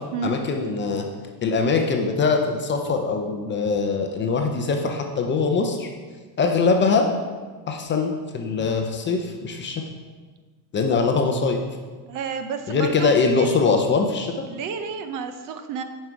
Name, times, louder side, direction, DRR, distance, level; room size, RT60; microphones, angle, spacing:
voice 1, 0.2-1.1 1.4-5.9 6.4-7.1 7.7-9.8 10.7-11.6 12.7-14.4, left 4 dB, 25° left, 3 dB, 0.6 m, -22 dB
voice 2, 12.1-13.6 14.5-15.8, right 6 dB, 40° right, 8 dB, 0.6 m, -30 dB
9.5 x 5.5 x 4.6 m, 1.4 s
supercardioid pair, 135°, 48 cm